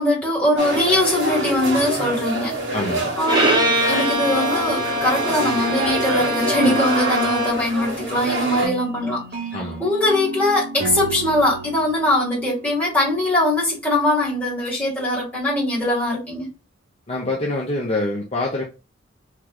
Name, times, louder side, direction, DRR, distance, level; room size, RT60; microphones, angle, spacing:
voice 1, 0.0-2.6 3.2-9.2 9.8-16.5, left 1 dB, 10° left, 1.9 m, -21 dB
sound 1, 0.6-8.7, right 1 dB, 80° right, 1.6 m, -26 dB
voice 2, 2.7-3.1 9.5-9.8 17.1-18.6, left 2 dB, 35° left, 0.7 m, -25 dB
Bowed string instrument, 3.2-7.8, equal, 25° right, 0.8 m, -23 dB
sound 2, 8.6-13.5, right 3 dB, 55° right, 1.0 m, -33 dB
3.5 x 3.1 x 2.3 m
head